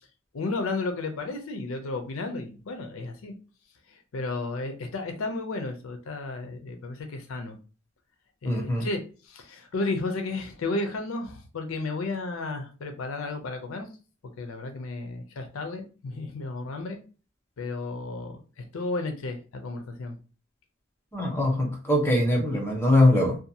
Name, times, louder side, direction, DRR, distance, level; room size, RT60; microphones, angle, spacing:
voice 1, 0.3-3.3 4.1-7.6 8.4-9.0 9.3-13.9 14.4-17.0 17.6-20.2, left 3 dB, 70° left, 5 dB, 0.5 m, -33 dB
voice 2, 8.4-8.9 21.1-23.4, left 1 dB, 10° left, -1 dB, 0.7 m, -22 dB
2.7 x 2.2 x 2.6 m, 0.36 s
head